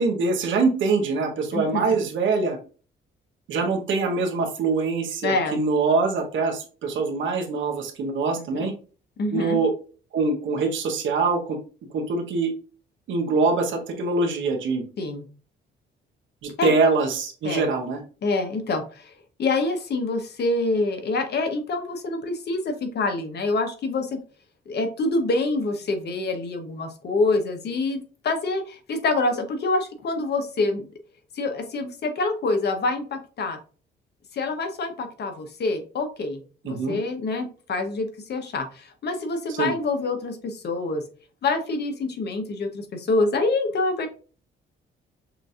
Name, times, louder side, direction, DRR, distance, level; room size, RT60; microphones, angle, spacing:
voice 1, 0.0-2.6 3.5-8.7 9.3-9.7 10.1-11.6 11.9-12.5 13.1-14.8 16.4-18.0 36.6-37.0 39.6-39.7, right 4 dB, 75° right, 3 dB, 1.1 m, -24 dB
voice 2, 1.5-1.9 5.2-5.6 8.4-8.5 9.2-9.6 15.0-15.2 16.6-16.7 17.4-17.7 18.2-19.1 19.4-24.2 24.7-30.9 31.3-33.6 34.3-41.0 41.4-44.1, left 3 dB, 55° left, 6 dB, 1.0 m, -26 dB
6.0 x 2.7 x 2.4 m, 0.38 s
cardioid pair, 90°, 20 cm